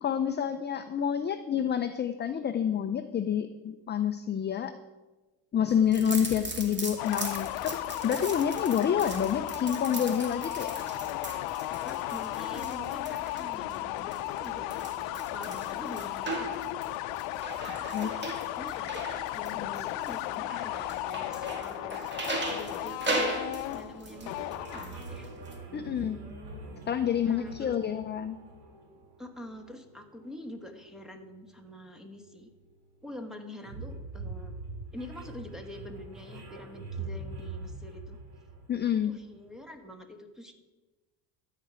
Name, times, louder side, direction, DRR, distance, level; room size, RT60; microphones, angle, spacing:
voice 1, 0.0-4.7 5.5-7.8 8.0-10.7 17.9-18.2 19.6-19.7 25.7-26.2 26.9-28.4 38.7-39.1, left 8 dB, 25° left, 9 dB, 0.5 m, -28 dB
sound 1, 5.7-25.6, right 2 dB, 25° right, 2.2 m, -39 dB
sound 2, 7.0-25.1, left 16 dB, 90° left, 0.6 m, -35 dB
voice 2, 11.8-16.5 18.6-18.9 19.3-25.3 27.3-27.7 29.2-32.5 33.0-34.5 34.9-38.2 39.0-40.5, left 1 dB, ahead, 5 dB, 1.5 m, -45 dB
sound 3, 24.1-39.5, right 3 dB, 60° right, 3.5 m, -44 dB
13.0 x 5.0 x 8.8 m, 1.2 s
cardioid pair, 115°, 44 cm